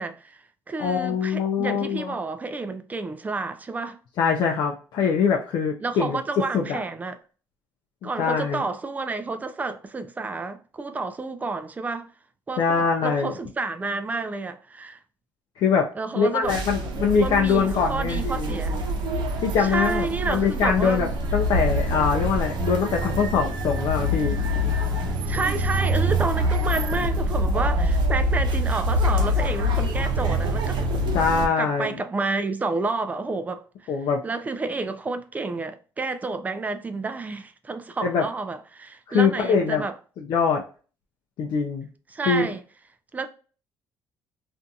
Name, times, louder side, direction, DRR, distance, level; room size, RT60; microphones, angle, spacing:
voice 1, 0.0-4.0 5.8-7.2 8.0-12.1 12.5-15.0 16.0-16.6 17.2-18.8 19.6-21.1 25.3-30.9 31.6-34.0 34.2-40.0 42.1-42.6 43.1-43.3, right 3 dB, 20° right, 0.4 m, -30 dB
voice 2, 0.8-2.1 4.2-6.2 6.5-6.8 8.0-8.6 12.6-13.3 15.6-15.9 16.2-18.5 19.4-24.4 31.1-31.9 33.9-34.2 38.0-38.2 39.1-39.8 40.2-40.6 41.4-41.9 42.3-42.5, left 6 dB, 65° left, 0.5 m, -23 dB
sound 1, 16.4-31.5, equal, 70° right, 0.8 m, -25 dB
2.7 x 2.5 x 2.2 m
cardioid pair, 105°, 8 cm